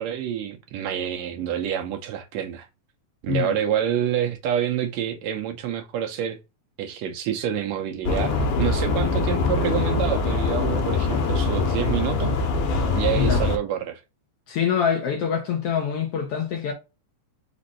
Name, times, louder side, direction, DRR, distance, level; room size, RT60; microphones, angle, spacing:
voice 1, 0.0-2.7 3.2-6.4 6.8-12.3 12.9-14.0, right 9 dB, 75° right, 1.7 m, -27 dB
sound 1, 8.0-13.6, left 3 dB, 90° left, 2.3 m, -23 dB
voice 2, 14.5-16.7, left 8 dB, 70° left, 1.5 m, -25 dB
5.1 x 2.5 x 4.1 m
omnidirectional pair, 3.4 m